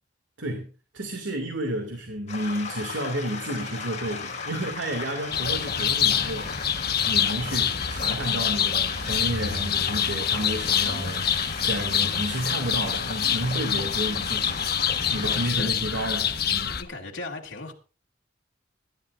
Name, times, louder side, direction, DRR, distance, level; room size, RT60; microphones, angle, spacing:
voice 1, 0.9-6.5 7.1-14.6 15.1-16.8, right 1 dB, 75° right, 2.5 m, -31 dB
sound 1, 2.3-15.5, left 4 dB, 40° left, 5.3 m, -36 dB
sound 2, 5.3-16.8, left 8 dB, 55° left, 1.3 m, -26 dB
voice 2, 15.2-16.0 16.8-17.7, left 3 dB, 85° left, 2.5 m, -37 dB
25.0 x 12.0 x 2.6 m
head